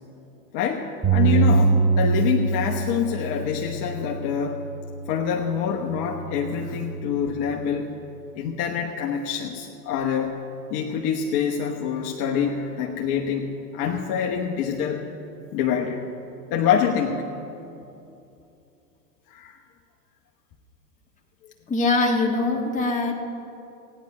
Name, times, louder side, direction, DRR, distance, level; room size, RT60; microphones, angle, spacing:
voice 1, 0.5-4.6 5.1-7.9 8.3-10.4 10.7-15.1 15.5-16.0 16.5-17.2 19.3-19.6, left 7 dB, 40° left, 0 dB, 1.1 m, -26 dB
Bass guitar, 1.0-5.5 6.1-7.3, right 4 dB, 5° right, 3.8 m, -24 dB
voice 2, 21.7-23.1, left 3 dB, 15° left, 0 dB, 1.6 m, -22 dB
16.0 x 9.7 x 5.4 m, 2.8 s
hypercardioid pair, 110°, 48 cm